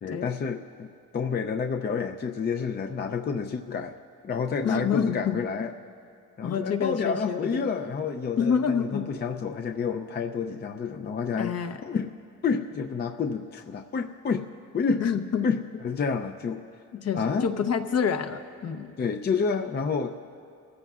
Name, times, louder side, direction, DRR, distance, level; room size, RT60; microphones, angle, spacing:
voice 1, 0.0-4.0 4.2-5.7 6.4-11.6 11.8-12.1 12.4-14.5 14.7-15.0 15.4-15.6 15.8-16.6 17.1-17.5 19.0-20.2, left 5 dB, 35° left, 5 dB, 0.5 m, -29 dB
voice 2, 4.6-5.4 6.4-7.7 8.4-9.1 11.4-11.8 15.0-15.5 16.9-18.9, left 7 dB, 55° left, 7 dB, 0.9 m, -27 dB
23.5 x 14.5 x 2.4 m, 2.4 s
cardioid pair, 90°, 30 cm